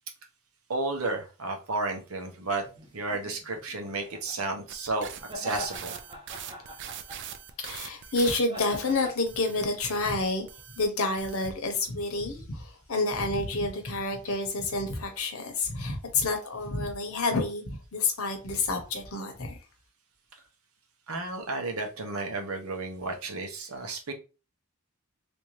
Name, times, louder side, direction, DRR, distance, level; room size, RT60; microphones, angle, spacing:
voice 1, 0.7-2.6 2.9-5.9 21.1-24.1, right 3 dB, 90° right, 0.9 m, -32 dB
sound 1, 2.6-4.4 5.2-7.5 8.4-9.1, left 1 dB, 25° right, 0.8 m, -43 dB
sound 2, 4.7-8.9 9.3-10.1 10.5-10.8 11.2-11.5, right 9 dB, 55° right, 0.4 m, -42 dB
voice 2, 7.6-10.5 10.8-19.6, left 3 dB, 85° left, 0.9 m, -29 dB
3.4 x 2.7 x 3.1 m
head